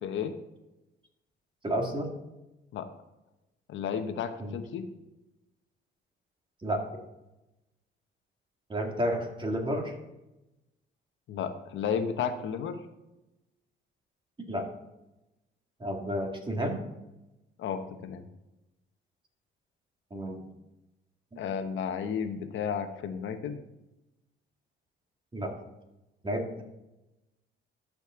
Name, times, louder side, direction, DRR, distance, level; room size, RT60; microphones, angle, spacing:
voice 1, 0.0-0.3 2.7-2.9 3.7-4.9 11.3-12.8 17.6-18.2 21.4-23.6, left 7 dB, 75° left, 8 dB, 1.0 m, -33 dB
voice 2, 1.6-2.1 4.4-4.6 6.6-6.8 8.7-9.9 14.5-14.7 15.8-16.8 20.1-20.4 21.3-21.4 25.3-25.5 26.2-26.6, equal, 25° right, 2 dB, 2.1 m, -31 dB
13.0 x 5.2 x 3.8 m, 0.96 s
cardioid pair, 90°, 20 cm